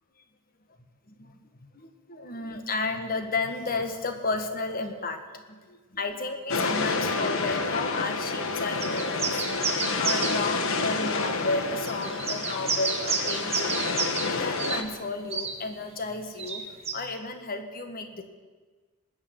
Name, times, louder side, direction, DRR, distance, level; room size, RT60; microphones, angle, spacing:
voice 1, 1.1-1.4 1.7-9.3 10.0-16.6 16.9-18.2, left 3 dB, 40° left, 7 dB, 1.5 m, -33 dB
sound 1, 6.5-14.8, left 4 dB, 65° left, 1.3 m, -29 dB
sound 2, 8.8-10.4 11.3-11.4 11.9-14.3 14.6-14.8 15.3-15.5 16.4-16.9, right 5 dB, 30° right, 1.4 m, -30 dB
20.0 x 6.7 x 9.3 m, 1.4 s
head